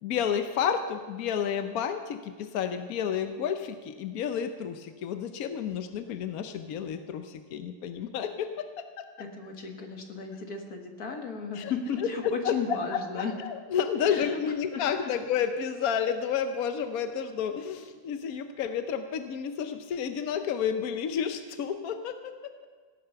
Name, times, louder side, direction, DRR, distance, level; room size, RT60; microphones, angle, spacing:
voice 1, 0.0-8.5 8.8-9.1 11.5-11.7 12.4-22.5, left 8 dB, 65° left, 8 dB, 0.9 m, -31 dB
voice 2, 9.2-13.3 14.0-14.4 14.7-15.1, left 5 dB, 45° left, 3 dB, 2.0 m, -35 dB
16.5 x 10.0 x 6.9 m, 1.5 s
omnidirectional pair, 2.3 m